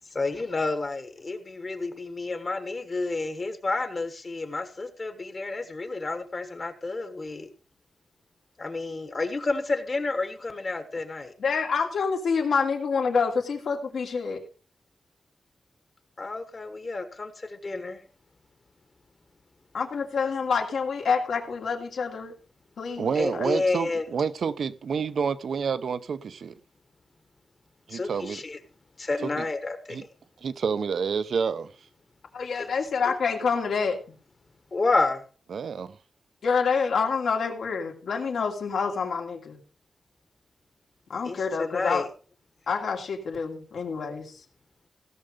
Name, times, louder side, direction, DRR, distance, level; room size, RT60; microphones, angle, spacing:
voice 1, 0.1-7.5 8.6-11.3 16.2-18.0 23.1-24.0 27.9-28.6 29.0-30.0 32.6-32.7 34.7-35.2 41.2-42.1, left 3 dB, 30° left, 1.3 m, -30 dB
voice 2, 11.4-14.4 19.7-22.3 22.8-23.5 32.3-34.0 36.4-39.6 41.1-42.0 42.7-44.4, left 5 dB, 80° left, 2.6 m, -27 dB
voice 3, 23.0-26.5 27.9-28.4 29.4-29.5 29.9-30.0 30.4-31.7 35.5-36.0, right 6 dB, 65° right, 0.7 m, -28 dB
16.5 x 6.7 x 5.1 m
wide cardioid pair, 175°, 0 cm